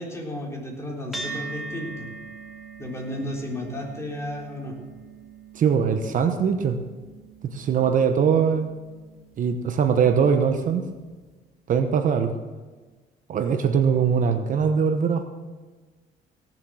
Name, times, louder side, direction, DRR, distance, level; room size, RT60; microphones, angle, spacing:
voice 1, 0.0-2.1 2.8-4.8, left 1 dB, 15° left, -1 dB, 3.6 m, -33 dB
sound 1, 1.1-9.8, right 4 dB, ahead, 3.0 m, -41 dB
voice 2, 5.5-6.8 7.5-8.7 9.4-10.8 11.7-12.3 13.3-15.2, right 7 dB, 50° right, 7 dB, 1.0 m, -21 dB
17.0 x 7.5 x 6.4 m, 1.3 s
cardioid pair, 110°, 17 cm